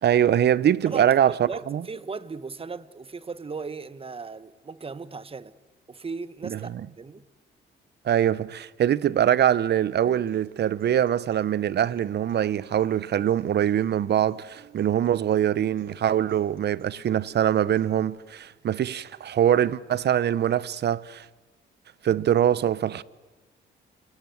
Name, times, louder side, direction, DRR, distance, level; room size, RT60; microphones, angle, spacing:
voice 1, 0.0-1.8 6.4-6.8 8.0-21.3 22.0-23.0, right 10 dB, 55° right, 0.9 m, -23 dB
voice 2, 0.9-5.5 5.9-6.7 7.0-7.2, right 4 dB, 30° right, 1.3 m, -37 dB
Acoustic guitar, 10.0-18.0, right 10 dB, 85° right, 3.2 m, -53 dB
28.5 x 24.0 x 7.9 m
cardioid pair, 90°, 20 cm